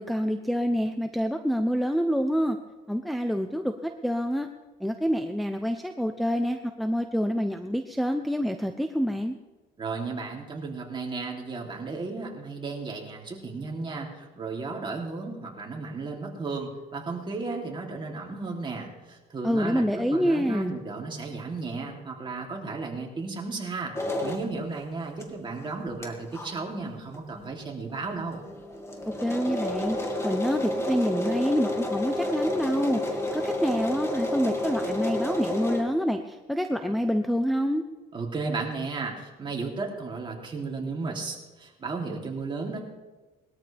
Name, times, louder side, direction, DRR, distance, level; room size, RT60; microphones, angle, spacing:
voice 1, 0.0-2.6 2.9-4.5 4.8-9.3 19.4-20.8 29.2-30.0 30.2-37.8, equal, ahead, 7 dB, 0.7 m, -27 dB
voice 2, 9.8-23.9 24.2-28.4 38.1-42.8, right 3 dB, 30° right, 0 dB, 3.2 m, -34 dB
sound 1, 24.0-24.5 25.2-25.3 25.6-25.7 26.0-26.1 26.3-26.5 27.1-27.2 27.5-27.6 27.9-28.0 28.3-35.8, left 1 dB, 15° left, 2.4 m, -30 dB
20.5 x 13.0 x 3.5 m, 1.2 s
cardioid pair, 110°, 17 cm